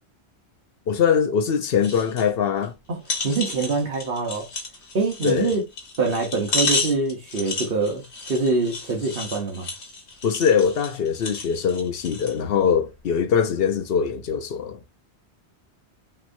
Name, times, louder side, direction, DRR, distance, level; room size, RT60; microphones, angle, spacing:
voice 1, 0.9-2.7 5.2-5.5 10.2-14.8, left 7 dB, 65° left, 0.9 m, -22 dB
sound 1, 1.8-2.3 2.6-2.7 3.0-12.4 12.9-13.0, left 3 dB, 85° left, 1.5 m, -31 dB
voice 2, 2.9-4.5 4.9-5.6 6.0-9.7, right 3 dB, 60° right, 1.2 m, -25 dB
5.9 x 2.9 x 2.6 m
omnidirectional pair, 1.1 m